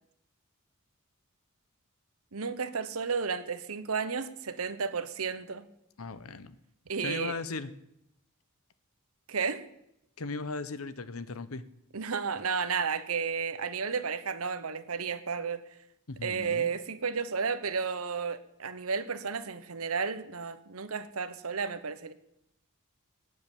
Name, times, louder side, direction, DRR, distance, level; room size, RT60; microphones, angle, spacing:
voice 1, 2.3-5.7 6.9-7.4 9.3-9.6 11.9-15.6 16.2-22.1, right 5 dB, 85° right, 1.0 m, -32 dB
voice 2, 6.0-6.6 7.0-7.7 10.2-11.6 16.1-16.7, left 3 dB, 80° left, 1.0 m, -37 dB
18.0 x 7.7 x 9.1 m
head